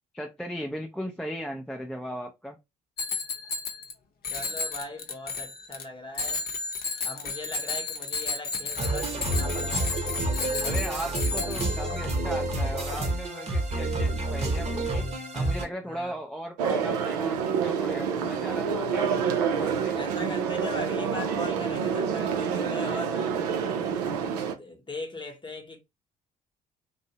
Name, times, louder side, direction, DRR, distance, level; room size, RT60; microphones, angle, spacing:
voice 1, 0.1-2.6 10.6-15.1 15.3-19.1 19.4-20.0, equal, 5° left, 0.4 m, -37 dB
Bicycle bell, 3.0-3.9 4.2-5.8 6.1-12.1, left 4 dB, 50° left, 0.7 m, -33 dB
voice 2, 4.2-6.4 7.0-10.0 15.8-16.1 19.1-19.4 19.9-23.4 24.0-25.8, left 1 dB, 25° left, 0.9 m, -40 dB
Synth Loop, 8.8-15.7, right 2 dB, 35° right, 0.9 m, -29 dB
sound 1, 16.6-24.5, right 6 dB, 85° right, 0.4 m, -27 dB
2.6 x 2.0 x 2.8 m
hypercardioid pair, 50°, 20 cm